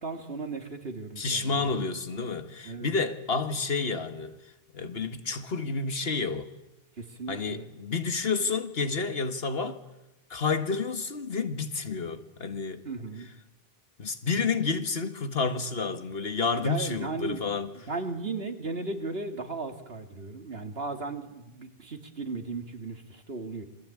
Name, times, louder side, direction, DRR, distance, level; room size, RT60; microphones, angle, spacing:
voice 1, 0.0-1.7 2.6-2.9 7.0-7.7 12.8-13.3 16.6-17.4 17.7-23.7, right 3 dB, 70° right, 2.7 m, -36 dB
voice 2, 1.2-4.4 4.7-6.5 7.3-9.8 10.3-12.8 14.0-17.7, left 4 dB, 70° left, 1.9 m, -30 dB
27.5 x 22.5 x 8.7 m
omnidirectional pair, 1.0 m